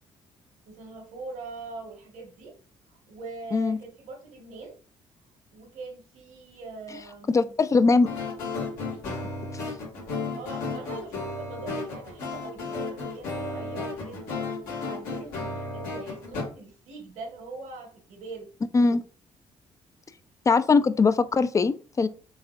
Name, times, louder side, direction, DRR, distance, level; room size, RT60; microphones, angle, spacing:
voice 1, 0.6-2.5 2.9-4.8 5.5-7.5 10.3-14.4 14.8-18.5, right 3 dB, 75° right, 1.3 m, -42 dB
voice 2, 7.3-8.1 18.7-19.0 20.5-22.1, left 4 dB, 25° left, 0.4 m, -21 dB
sound 1, 8.1-16.4, left 3 dB, 80° left, 1.6 m, -33 dB
4.0 x 3.5 x 2.4 m
hypercardioid pair, 55°, 14 cm